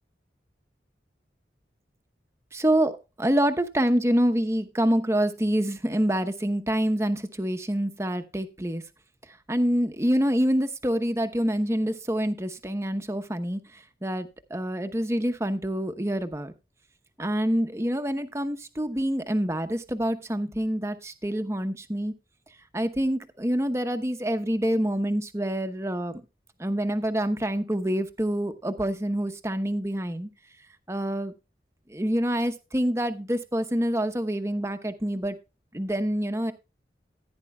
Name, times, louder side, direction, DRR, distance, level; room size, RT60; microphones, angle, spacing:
voice 1, 2.5-8.8 9.5-13.6 14.0-16.5 17.2-22.1 22.7-26.2 26.6-30.3 30.9-31.3 31.9-35.4 35.7-36.5, equal, 15° right, 9 dB, 0.9 m, -26 dB
15.0 x 9.7 x 2.3 m, 0.27 s
head